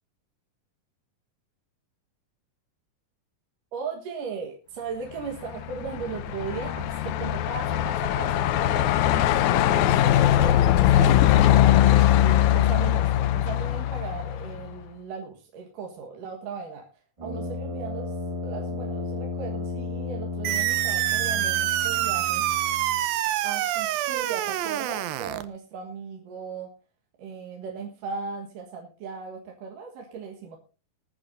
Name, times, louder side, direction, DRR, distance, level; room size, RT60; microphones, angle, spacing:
voice 1, 3.7-8.9 9.3-11.8 12.2-18.2 18.4-22.5 23.4-26.7 27.2-30.6, right 5 dB, 70° right, 1 dB, 3.1 m, -37 dB
Truck, 5.3-14.7, left 12 dB, 75° left, 1.8 m, -21 dB
Brass instrument, 17.2-23.1, left 3 dB, 10° right, 1.7 m, -34 dB
sound 1, 20.4-25.4, right 14 dB, 90° right, 2.6 m, -26 dB
20.0 x 10.5 x 2.7 m, 0.35 s
omnidirectional pair, 4.1 m